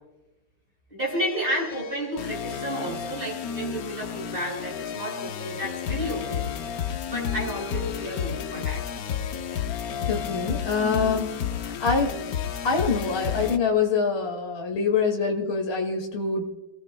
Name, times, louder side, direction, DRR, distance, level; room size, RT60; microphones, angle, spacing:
voice 1, 0.9-6.4 7.1-8.8, equal, 25° right, -3 dB, 7.0 m, -31 dB
sound 1, 1.0-13.6, left 8 dB, 60° left, 1.1 m, -32 dB
voice 2, 10.1-11.4 11.6-12.1 12.6-16.5, left 5 dB, 35° left, 1 dB, 2.3 m, -25 dB
29.0 x 18.5 x 2.3 m, 1.1 s
omnidirectional pair, 2.0 m